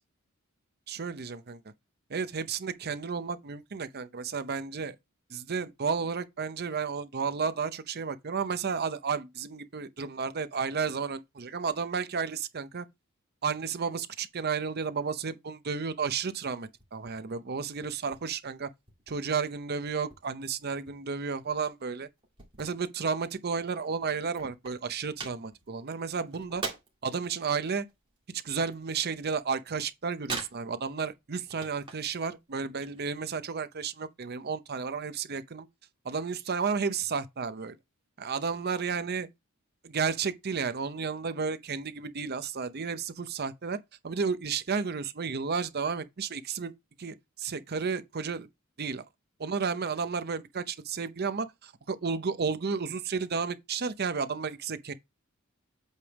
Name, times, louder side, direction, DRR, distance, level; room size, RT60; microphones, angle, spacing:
voice 1, 0.9-1.6 2.1-5.0 5.3-12.9 13.4-18.7 19.1-22.1 22.6-26.6 27.0-27.9 28.4-35.7 36.0-37.8 38.2-39.3 39.8-46.7 47.0-48.5 48.8-49.0 49.4-54.9, right 5 dB, 45° right, 0.7 m, -32 dB
sound 1, 16.8-17.2 17.5-19.2 19.5-20.5 20.8-23.4 23.7-23.8 24.0-27.1 27.5-29.4 29.7-31.0 31.3-32.2 32.5-33.3, right 4 dB, 25° right, 2.0 m, -42 dB
8.1 x 3.4 x 4.8 m
head